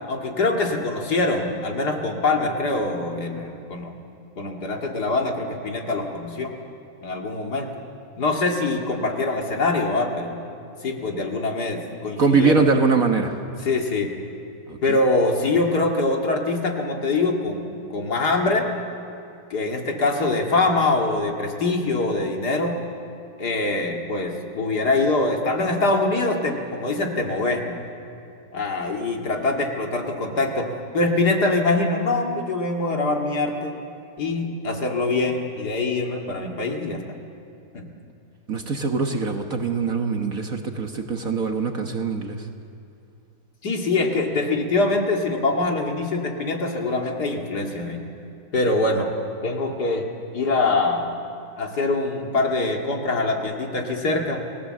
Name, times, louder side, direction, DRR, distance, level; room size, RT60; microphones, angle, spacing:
voice 1, 0.1-4.0 4.4-6.6 7.0-7.7 8.2-10.4 10.8-12.6 13.6-14.1 14.8-18.7 19.5-22.8 23.4-27.8 28.5-33.7 34.2-37.0 37.7-37.9 43.6-48.0 48.5-49.1 49.4-50.1 50.3-51.1 51.6-54.4, left 2 dB, 55° left, 2 dB, 2.7 m, -24 dB
voice 2, 12.2-13.3 14.7-15.0 38.5-42.4, right 4 dB, 45° right, 4 dB, 1.6 m, -22 dB
29.0 x 19.5 x 7.7 m, 2.6 s
omnidirectional pair, 2.2 m